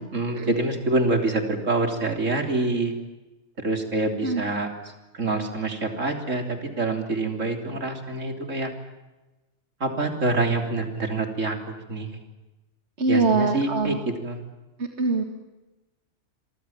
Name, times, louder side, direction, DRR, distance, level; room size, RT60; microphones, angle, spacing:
voice 1, 0.0-3.0 3.6-4.7 5.1-8.7 9.8-11.6 11.9-12.1 13.1-14.4, right 2 dB, 80° right, 4 dB, 3.7 m, -26 dB
voice 2, 13.0-14.0 15.0-15.2, right 3 dB, 60° right, 4 dB, 2.5 m, -23 dB
26.5 x 24.5 x 7.3 m, 1.1 s
omnidirectional pair, 1.3 m